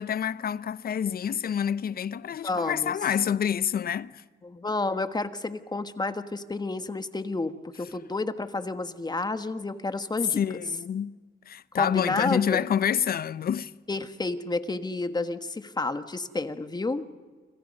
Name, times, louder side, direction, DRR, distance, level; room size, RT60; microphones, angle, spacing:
voice 1, 0.0-4.2 10.3-11.2 11.5-13.7, left 8 dB, 50° left, 0.7 m, -28 dB
voice 2, 2.4-3.0 4.4-10.4 11.7-12.6 13.9-17.0, left 3 dB, 20° left, 1.4 m, -30 dB
28.0 x 26.0 x 5.4 m
cardioid pair, 90°, 20 cm